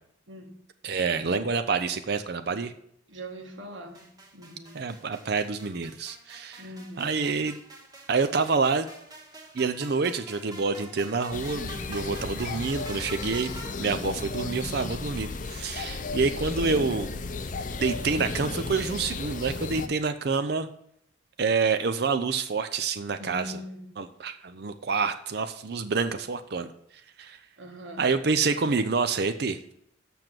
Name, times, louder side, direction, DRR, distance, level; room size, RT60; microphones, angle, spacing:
voice 1, 0.8-2.7 4.7-6.6 7.0-7.5 8.1-8.9 9.5-13.5 13.8-17.1 17.8-20.7 21.4-23.6 24.0-26.7 27.2-27.4 28.0-29.6, right 4 dB, 55° right, 9 dB, 0.5 m, -27 dB
voice 2, 3.1-4.1 4.3-4.8 6.6-7.4 23.2-23.9 27.6-28.0, equal, 85° right, 2 dB, 1.9 m, -41 dB
sound 1, 3.9-13.7, right 1 dB, 20° right, 1.4 m, -46 dB
sound 2, 11.3-19.9, left 3 dB, 45° left, 0.6 m, -34 dB
7.1 x 6.0 x 7.6 m, 0.72 s
head